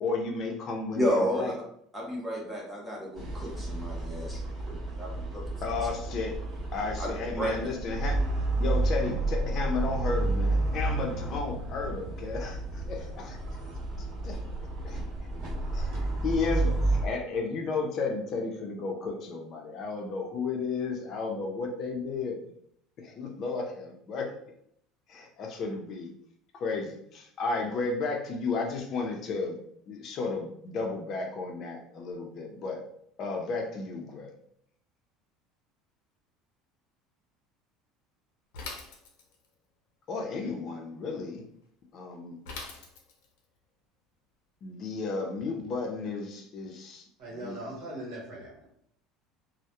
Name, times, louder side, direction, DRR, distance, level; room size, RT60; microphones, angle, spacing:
voice 1, 0.0-1.5 5.6-6.3 6.7-8.2 8.6-13.4 14.2-14.4 14.8-15.0 15.7-22.5 23.0-24.3 25.1-26.1 26.5-29.6 29.9-32.8 33.2-34.3 40.1-41.4 41.9-42.4 44.6-47.0 47.4-47.6, left 4 dB, 40° left, 2 dB, 0.5 m, -33 dB
voice 2, 0.9-1.5 1.9-5.5 7.0-7.1 7.4-7.7, equal, 5° right, -3 dB, 0.7 m, -32 dB
sound 1, 3.2-17.1, right 2 dB, 35° right, 1.0 m, -31 dB
Bicycle / Mechanisms, 38.5-39.5 42.5-43.4, left 3 dB, 90° left, 0.5 m, -42 dB
voice 3, 47.2-48.7, right 1 dB, 80° right, -3 dB, 0.8 m, -40 dB
2.2 x 2.1 x 2.8 m, 0.69 s
cardioid pair, 140°, 0 cm